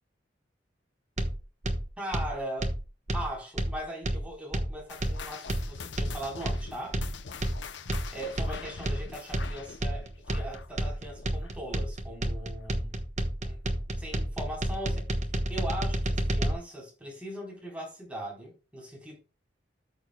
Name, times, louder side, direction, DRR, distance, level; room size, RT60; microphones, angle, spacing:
sound 1, 1.2-16.5, right 1 dB, 40° right, 1.2 m, -30 dB
voice 1, 2.0-2.7 3.1-7.0 8.1-13.0 13.4-13.6 14.0-15.1 15.5-19.2, right 1 dB, 5° right, 3.8 m, -39 dB
sound 2, 4.9-11.8 12.0-12.3 12.9-13.0 13.8-13.9, left 5 dB, 90° left, 0.7 m, -44 dB
13.5 x 6.8 x 2.2 m
head